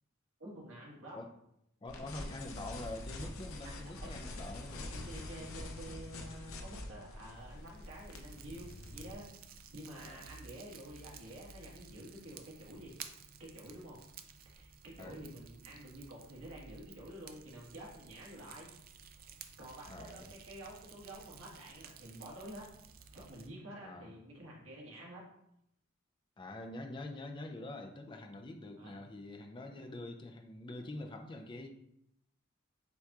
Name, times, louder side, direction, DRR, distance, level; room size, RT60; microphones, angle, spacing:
voice 1, 0.4-1.2 4.0-4.1 5.0-12.9 13.4-14.0 14.4-18.7 19.1-22.6 23.1-25.2 28.8-29.0, right 1 dB, 85° right, -3 dB, 1.6 m, -49 dB
voice 2, 1.8-4.9 10.0-10.2 15.0-15.2 19.9-20.3 23.8-24.1 26.4-31.7, left 2 dB, 25° left, 4 dB, 0.4 m, -45 dB
sound 1, 1.9-9.1, left 2 dB, 80° left, 0.6 m, -45 dB
Fire, 7.3-23.5, right 6 dB, 45° right, 0.4 m, -54 dB
7.8 x 2.9 x 2.3 m, 0.77 s
head